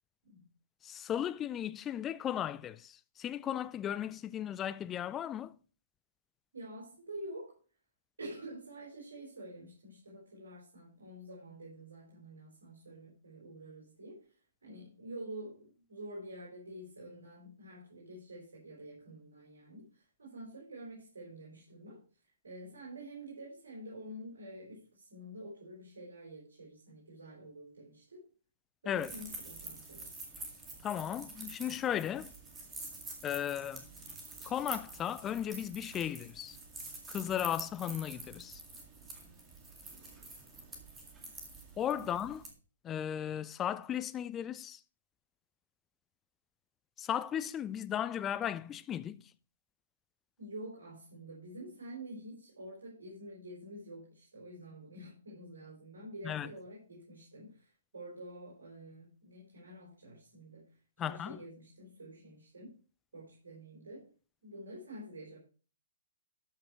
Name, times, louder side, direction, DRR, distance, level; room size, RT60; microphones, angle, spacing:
voice 1, 0.8-5.6 28.9-29.1 30.8-32.3 33.2-33.8 34.4-36.6 37.1-38.6 41.8-42.4 42.8-44.8 47.0-49.2 56.2-56.5 61.0-61.4, left 10 dB, 20° left, 0.5 m, -36 dB
voice 2, 6.5-7.6 8.2-14.3 14.6-22.0 22.4-28.3 28.8-30.1 42.0-42.1 50.4-62.8 63.1-64.1 64.4-65.4, right 1 dB, 70° right, 5.1 m, -48 dB
sound 1, 28.9-42.5, right 3 dB, 15° right, 2.1 m, -47 dB
13.0 x 5.9 x 4.4 m
figure-of-eight pair, 125°, 0 cm